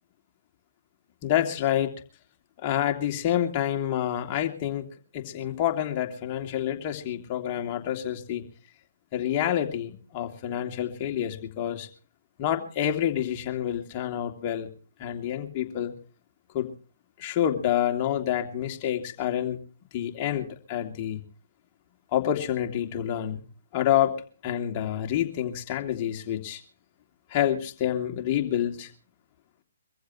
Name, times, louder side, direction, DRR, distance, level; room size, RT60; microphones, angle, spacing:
voice 1, 1.2-1.9 2.6-4.8 5.1-8.4 9.1-11.9 12.4-14.7 15.0-15.9 16.5-16.7 17.2-19.6 19.9-21.2 22.1-23.4 23.7-24.1 24.4-26.6 27.3-28.9, left 11 dB, 35° left, 4 dB, 2.9 m, -28 dB
24.0 x 15.0 x 3.2 m, 0.38 s
figure-of-eight pair, 130°, 0 cm